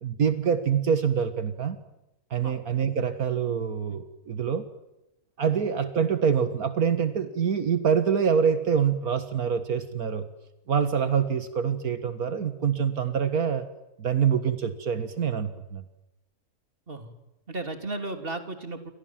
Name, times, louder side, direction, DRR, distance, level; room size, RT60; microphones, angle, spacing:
voice 1, 0.0-1.8 2.3-4.6 5.4-10.3 10.7-13.7 14.0-15.8, right 7 dB, 80° right, 10 dB, 2.1 m, -25 dB
voice 2, 17.5-18.9, right 2 dB, 40° right, 8 dB, 3.4 m, -35 dB
29.5 x 25.0 x 7.5 m, 0.92 s
omnidirectional pair, 1.5 m